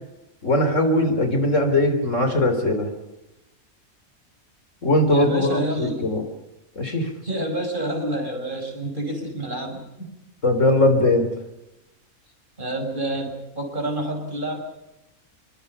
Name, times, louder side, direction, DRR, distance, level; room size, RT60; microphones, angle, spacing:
voice 1, 0.4-2.9 4.8-6.2 6.8-7.1 10.4-11.3, left 1 dB, 60° left, 7 dB, 4.1 m, -20 dB
voice 2, 5.1-6.1 7.2-9.9 12.6-14.6, right 1 dB, 35° right, 4 dB, 5.7 m, -28 dB
26.5 x 23.0 x 5.6 m, 0.93 s
omnidirectional pair, 1.5 m